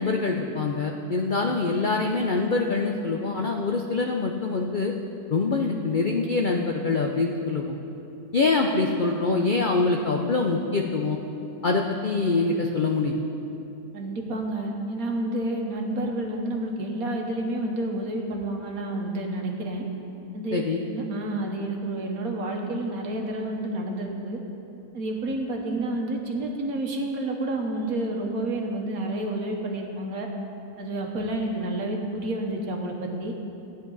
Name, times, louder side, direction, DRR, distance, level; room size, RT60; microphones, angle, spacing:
voice 1, 0.0-4.9 5.3-7.7 8.3-11.2 11.6-13.2 20.5-20.8, left 3 dB, 65° left, 2 dB, 0.5 m, -24 dB
voice 2, 13.9-19.8 20.3-20.6 20.9-24.4 24.9-30.3 30.8-33.3, right 1 dB, 65° right, 1 dB, 1.6 m, -29 dB
15.5 x 9.4 x 4.0 m, 2.9 s
omnidirectional pair, 1.7 m